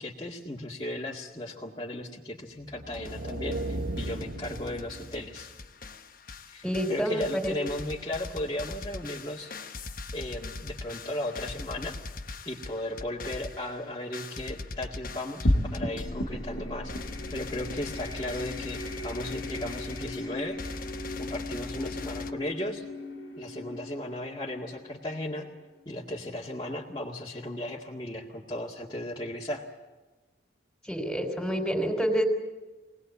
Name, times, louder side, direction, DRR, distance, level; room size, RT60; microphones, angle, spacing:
voice 1, 0.0-5.5 6.5-6.6 6.9-9.9 10.1-12.0 12.5-20.6 21.2-22.9 23.4-25.5 25.9-29.6, left 1 dB, 25° left, -5 dB, 2.1 m, -36 dB
sound 1, 2.6-5.6, right 1 dB, 85° right, 1.7 m, -36 dB
sound 2, 2.9-3.7 4.0-22.3, left 3 dB, 50° left, 1.1 m, -41 dB
voice 2, 6.6-7.5 30.8-32.3, equal, 5° left, 4 dB, 3.7 m, -28 dB
sound 3, 15.4-26.1, left 1 dB, 80° left, 2.5 m, -35 dB
24.5 x 19.0 x 8.4 m, 1.2 s
head